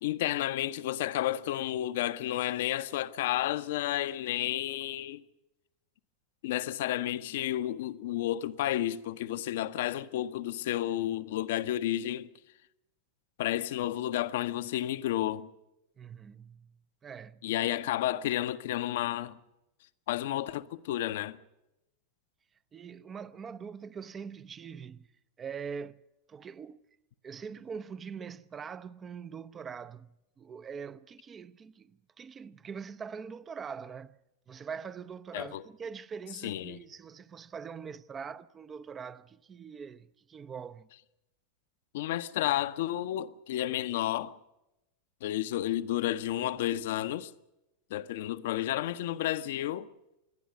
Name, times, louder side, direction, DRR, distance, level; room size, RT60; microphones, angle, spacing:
voice 1, 0.0-5.2 6.4-12.3 13.4-15.5 17.4-19.4 20.1-21.4 35.3-35.6 36.4-36.8 41.9-44.4 45.2-47.3 47.9-49.9, left 13 dB, 55° left, 0.8 m, -31 dB
voice 2, 16.0-17.9 22.7-25.1 25.4-26.0 26.3-26.8 27.2-34.1 34.5-40.9, right 6 dB, 20° right, 0.6 m, -43 dB
26.5 x 11.0 x 9.4 m
figure-of-eight pair, 90°, 0 cm